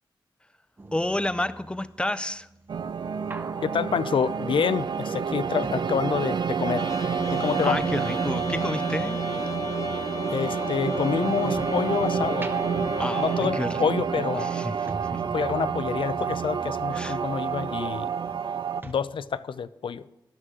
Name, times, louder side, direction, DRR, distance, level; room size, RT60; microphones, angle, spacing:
sound 1, 0.8-6.8 7.0-11.9 12.3-18.6 18.8-18.9, right 2 dB, 25° right, 0.7 m, -45 dB
voice 1, 0.9-2.5 7.6-9.2 13.0-15.2 16.9-17.2, left 1 dB, 10° left, 15 dB, 0.4 m, -30 dB
sound 2, 2.7-18.8, right 6 dB, 60° right, 0.4 m, -29 dB
voice 2, 3.6-6.9 7.3-7.8 10.3-12.5 13.2-14.5 15.3-18.1 18.8-20.0, left 6 dB, 80° left, 15 dB, 0.4 m, -27 dB
Trumpet, 6.7-13.6, left 3 dB, 40° left, 0.8 m, -35 dB
13.0 x 10.5 x 3.7 m, 0.87 s
wide cardioid pair, 120°, 8 cm